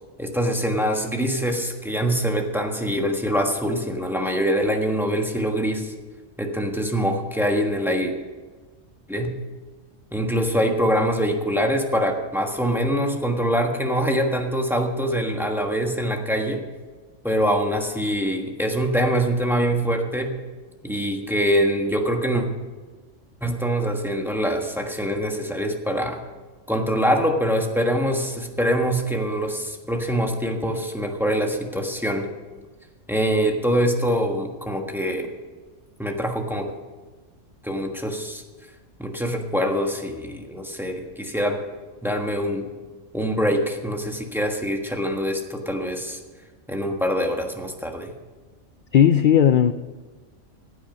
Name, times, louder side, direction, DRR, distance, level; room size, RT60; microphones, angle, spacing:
voice 1, 0.2-5.9 6.4-8.1 9.1-9.3 10.1-16.6 17.2-20.3 20.8-22.4 23.4-26.2 26.7-32.3 33.1-35.3 36.0-36.7 37.6-38.4 39.0-41.6 42.0-42.7 43.1-46.2 46.7-48.1, equal, ahead, 2 dB, 1.3 m, -24 dB
voice 2, 48.9-49.7, left 9 dB, 65° left, 10 dB, 0.5 m, -15 dB
15.5 x 8.9 x 5.4 m, 1.4 s
omnidirectional pair, 1.3 m